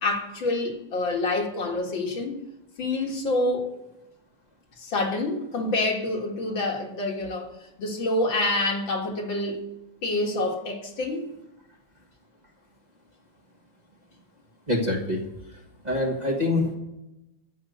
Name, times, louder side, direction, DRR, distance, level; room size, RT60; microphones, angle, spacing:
voice 1, 0.0-2.4 2.8-3.7 4.8-7.5 7.8-9.6 10.0-11.3, left 2 dB, 60° left, 2.7 m, -27 dB
voice 2, 14.7-15.2 15.8-16.8, left 2 dB, 20° right, 1.6 m, -25 dB
14.5 x 5.7 x 8.0 m
omnidirectional pair, 2.4 m